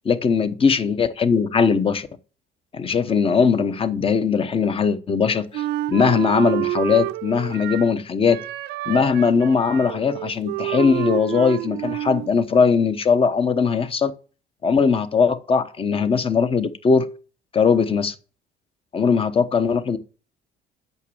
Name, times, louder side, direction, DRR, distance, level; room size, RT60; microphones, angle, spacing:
voice 1, 0.0-2.1 2.7-8.4 8.9-14.1 14.6-17.1 17.5-18.1 18.9-20.0, left 5 dB, 35° left, 1.0 m, -20 dB
Wind instrument woodwind instrument, 5.5-8.0 8.3-12.4, right 16 dB, 85° right, 0.6 m, -29 dB
8.2 x 6.2 x 7.0 m
cardioid pair, 110°, 17 cm